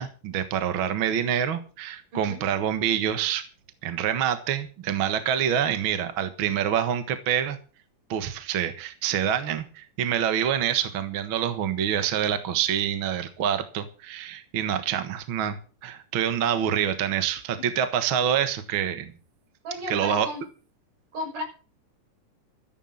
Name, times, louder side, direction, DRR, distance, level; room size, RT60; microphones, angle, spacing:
voice 1, 0.0-3.5 3.8-7.6 8.1-19.1 19.9-20.3, right 9 dB, 50° right, 1.9 m, -26 dB
voice 2, 2.1-2.5 19.6-20.4 21.1-21.4, left 1 dB, 90° right, 7.8 m, -34 dB
14.0 x 10.0 x 6.5 m
omnidirectional pair, 3.6 m